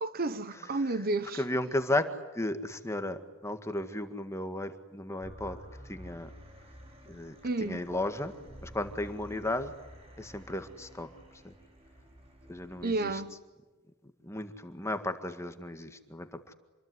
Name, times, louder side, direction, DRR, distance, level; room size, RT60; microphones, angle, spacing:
voice 1, 0.0-1.4 7.4-7.9 12.8-13.3, right 2 dB, 45° right, 1.1 m, -31 dB
voice 2, 1.4-2.1 2.4-5.6 5.9-6.3 7.1-7.4 7.6-8.3 8.6-9.7 10.2-11.1 11.4-11.5 12.5-13.1 14.2-16.5, left 1 dB, 15° left, 1.8 m, -34 dB
sound 1, 5.2-13.2, equal, 30° right, 5.9 m, -51 dB
27.5 x 22.0 x 9.6 m
head